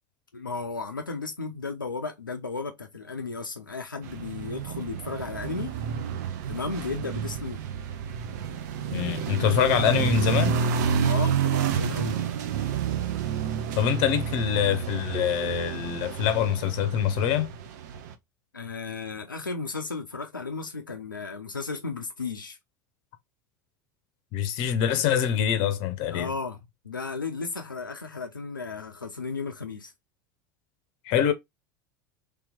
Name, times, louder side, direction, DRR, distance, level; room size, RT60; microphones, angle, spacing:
voice 1, 0.3-5.7 6.5-7.6 11.0-12.2 18.5-22.6 26.1-29.9, left 4 dB, 85° left, 0.5 m, -34 dB
sound 1, 4.0-18.1, right 7 dB, 60° right, 0.6 m, -29 dB
voice 2, 8.9-10.6 13.7-17.5 24.3-26.3 31.0-31.3, left 9 dB, 50° left, 0.8 m, -25 dB
3.3 x 3.0 x 3.5 m
figure-of-eight pair, 75°, 11 cm